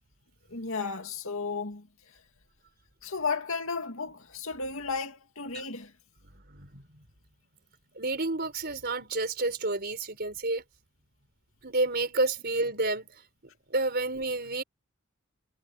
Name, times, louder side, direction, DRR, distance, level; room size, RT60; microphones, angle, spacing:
voice 1, 0.5-1.9 3.0-5.9, left 4 dB, 60° left, 2.7 m, -33 dB
voice 2, 6.5-6.8 7.9-10.6 11.6-13.2 13.7-14.6, right 2 dB, 45° right, 4.8 m, -30 dB
head